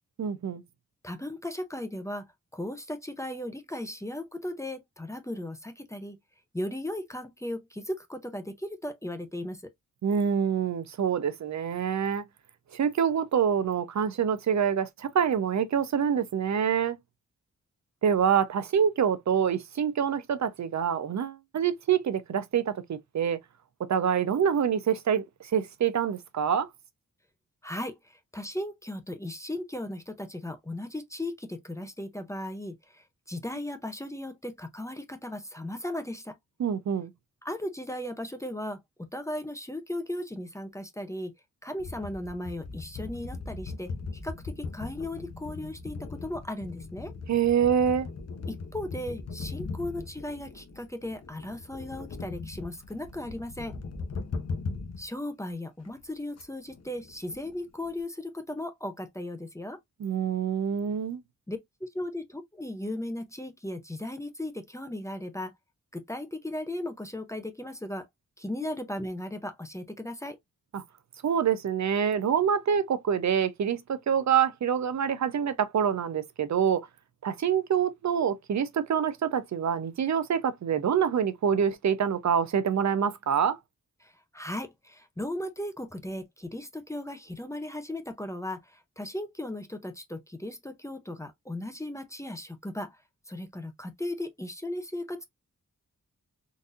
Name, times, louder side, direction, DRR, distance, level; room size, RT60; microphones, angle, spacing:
voice 1, 0.2-0.6 10.0-12.2 12.7-17.0 18.0-23.4 23.8-26.7 36.6-37.1 47.3-48.1 60.0-61.2 70.7-70.8 71.2-76.9 77.2-83.6, right 8 dB, 60° right, 0.6 m, -26 dB
voice 2, 1.0-2.2 2.5-6.2 6.5-9.7 27.6-36.3 37.4-38.8 39.1-41.3 41.6-43.9 44.2-47.1 48.5-53.8 55.0-59.8 61.5-65.5 65.9-68.1 68.4-70.4 84.0-93.0 93.3-95.2, left 1 dB, 10° left, 0.6 m, -36 dB
sound 1, 41.8-55.0 55.5-55.6 55.8-56.0 56.4-56.5 56.7-58.0, left 4 dB, 55° left, 0.8 m, -39 dB
3.9 x 2.6 x 2.4 m
wide cardioid pair, 120°, 31 cm